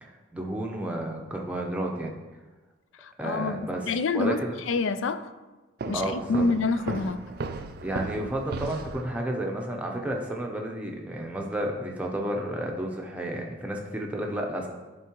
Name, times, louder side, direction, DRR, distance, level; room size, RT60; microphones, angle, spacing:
voice 1, 0.0-2.1 3.2-4.6 5.9-6.5 7.8-14.7, right 1 dB, 5° right, 0.6 m, -32 dB
voice 2, 3.0-5.3 5.9-7.2, left 3 dB, 75° left, 0.4 m, -27 dB
Walk footsteps, 5.8-9.1, right 3 dB, 50° right, 0.3 m, -35 dB
10.5 x 3.7 x 3.0 m
head